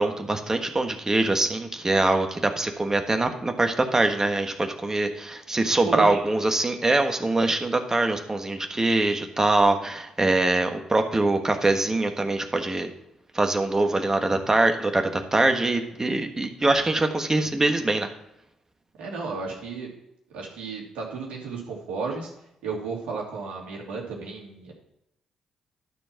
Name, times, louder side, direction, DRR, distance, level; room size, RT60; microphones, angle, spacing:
voice 1, 0.0-12.9 13.3-18.1, right 2 dB, 25° right, 5 dB, 1.5 m, -23 dB
voice 2, 5.8-6.2 19.0-19.9 20.3-22.3 22.6-24.7, right 4 dB, 75° right, -2 dB, 2.8 m, -33 dB
12.0 x 4.5 x 5.9 m, 0.82 s
hypercardioid pair, 45°, 2 cm